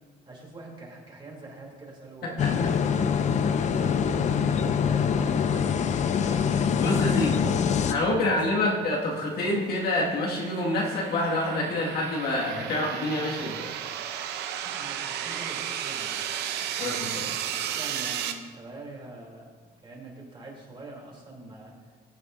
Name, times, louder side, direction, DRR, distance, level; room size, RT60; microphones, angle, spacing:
voice 1, 0.3-3.2 3.8-5.6 6.0-7.5 8.1-8.4 13.2-13.5 14.6-16.2 17.4-19.5 19.8-21.7, right 2 dB, 30° right, -2 dB, 3.2 m, -44 dB
voice 2, 2.2-2.7 6.8-7.4 7.9-13.7 16.8-17.3, left 1 dB, 70° left, -3 dB, 2.0 m, -27 dB
sound 1, 2.4-7.9, left 7 dB, 45° left, 0.5 m, -24 dB
sound 2, 9.4-18.3, right 9 dB, 80° right, 0.7 m, -34 dB
15.0 x 7.9 x 2.7 m, 1.4 s
cardioid pair, 110°, 17 cm